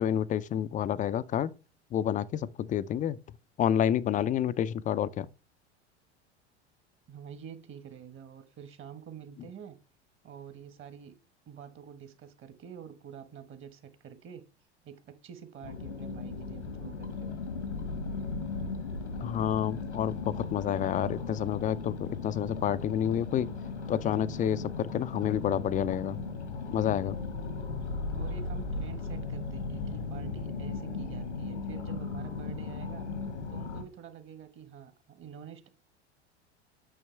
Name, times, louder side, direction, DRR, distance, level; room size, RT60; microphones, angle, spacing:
voice 1, 0.0-1.5 1.9-3.2 3.6-5.3 19.2-23.5 23.9-26.2 26.7-27.2, left 10 dB, 25° left, 0.4 m, -29 dB
voice 2, 7.1-9.8 10.2-11.1 11.5-14.4 14.8-17.3 28.1-33.1 33.5-35.7, right 8 dB, 35° right, 1.3 m, -47 dB
sound 1, 15.6-33.8, left 4 dB, 85° left, 1.4 m, -37 dB
9.0 x 6.0 x 3.3 m
hypercardioid pair, 80°, 34 cm